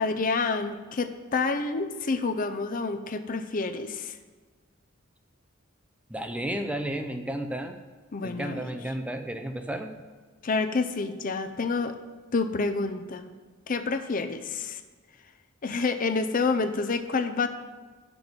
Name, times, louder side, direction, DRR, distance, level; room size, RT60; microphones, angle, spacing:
voice 1, 0.0-4.2 8.1-8.7 10.4-12.0 12.3-13.3 13.7-14.8 15.6-17.5, left 4 dB, 40° left, 8 dB, 0.5 m, -28 dB
voice 2, 6.1-7.8 8.2-9.9, right 1 dB, 5° right, 6 dB, 0.5 m, -32 dB
10.5 x 6.0 x 5.2 m, 1.4 s
head